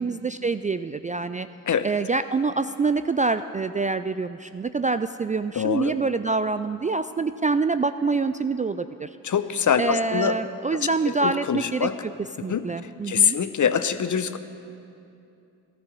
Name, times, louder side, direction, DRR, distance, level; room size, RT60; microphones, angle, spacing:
voice 1, 0.0-1.5 1.8-9.1 9.8-12.1 12.4-13.4, right 4 dB, 20° right, 11 dB, 0.4 m, -26 dB
voice 2, 5.6-6.0 9.2-10.4 10.7-10.8 11.1-12.0 12.5-14.4, left 8 dB, 45° left, 12 dB, 0.9 m, -24 dB
14.0 x 12.5 x 6.8 m, 2.7 s
hypercardioid pair, 40°, 43 cm